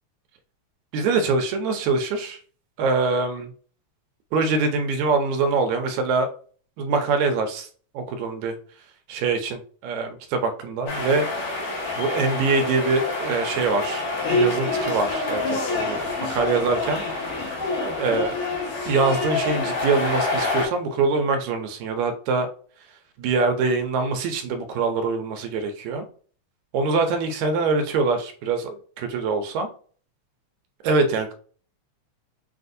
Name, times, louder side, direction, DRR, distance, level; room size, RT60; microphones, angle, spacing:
voice 1, 0.9-2.4 2.8-3.5 4.3-6.3 6.8-7.7 7.9-8.5 9.1-11.5 12.0-16.0 16.3-17.0 18.0-18.4 18.9-22.5 23.2-26.1 26.7-29.7 30.8-31.3, right 4 dB, 75° right, 6 dB, 1.9 m, -24 dB
sound 1, 10.9-20.7, left 2 dB, 65° left, 2.3 m, -26 dB
6.3 x 2.6 x 2.6 m, 0.43 s
omnidirectional pair, 3.5 m